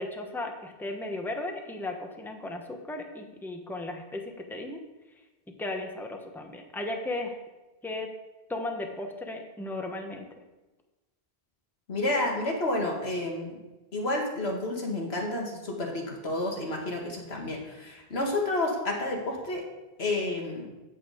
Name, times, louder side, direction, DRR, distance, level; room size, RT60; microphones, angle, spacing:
voice 1, 0.0-4.8 5.6-7.4 7.8-8.1 8.5-10.3, left 2 dB, ahead, 3 dB, 1.0 m, -35 dB
voice 2, 11.9-13.6 13.9-19.6 20.0-20.6, left 2 dB, 90° left, 0 dB, 2.1 m, -30 dB
8.7 x 8.1 x 5.0 m, 1.1 s
omnidirectional pair, 1.0 m